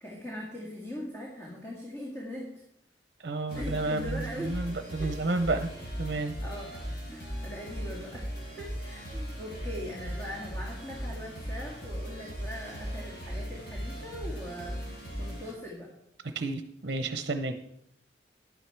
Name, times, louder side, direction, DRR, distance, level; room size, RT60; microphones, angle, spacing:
voice 1, 0.0-2.5 3.5-4.6 5.0-5.1 6.4-6.8 7.1-8.3 8.6-14.8 15.2-15.9, equal, 15° left, -4 dB, 1.9 m, -41 dB
voice 2, 3.2-5.7 6.0-6.3 16.2-17.6, right 2 dB, 60° right, 8 dB, 0.8 m, -31 dB
sound 1, 3.5-15.5, equal, 65° left, 4.3 m, -38 dB
11.0 x 9.4 x 4.6 m, 0.78 s
head